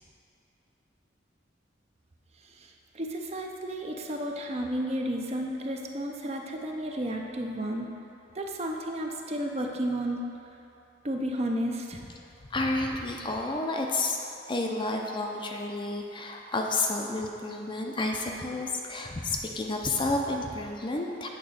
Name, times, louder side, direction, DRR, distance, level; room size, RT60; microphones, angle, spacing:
voice 1, 2.4-7.9 8.3-10.2 11.0-12.0, right 1 dB, 35° right, 1 dB, 0.5 m, -32 dB
voice 2, 12.5-14.2 14.5-21.3, left 2 dB, 25° left, 1 dB, 0.5 m, -30 dB
8.1 x 3.8 x 6.4 m, 2.7 s
head